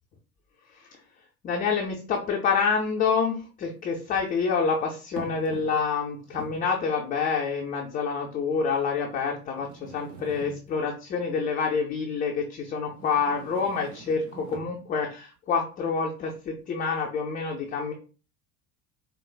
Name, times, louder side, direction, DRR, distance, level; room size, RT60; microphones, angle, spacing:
voice 1, 1.4-17.9, left 5 dB, 20° left, 0 dB, 0.3 m, -27 dB
sound 1, 2.2-2.3 3.6-4.3 5.2-6.0 6.2-6.8 7.6-7.7 8.5-8.6 9.6-11.0 12.9-14.8, right 3 dB, 80° right, 0.7 m, -45 dB
4.5 x 2.1 x 2.2 m, 0.36 s
figure-of-eight pair, 65°, 48 cm